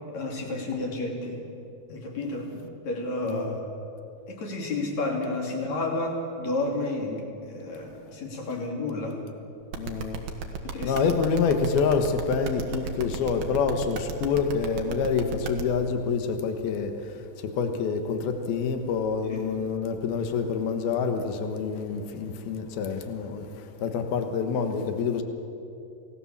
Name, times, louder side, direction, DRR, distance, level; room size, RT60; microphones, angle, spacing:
voice 1, 0.1-1.4 1.9-3.7 4.3-9.2 10.6-11.0 19.3-19.6, left 2 dB, 50° left, 4.2 m, -31 dB
voice 2, 3.2-3.5 9.7-10.2 10.8-25.2, left 5 dB, 85° left, 3.3 m, -27 dB
sound 1, 9.7-15.6, right 7 dB, 80° right, 3.5 m, -33 dB
27.0 x 18.5 x 7.4 m
omnidirectional pair, 4.3 m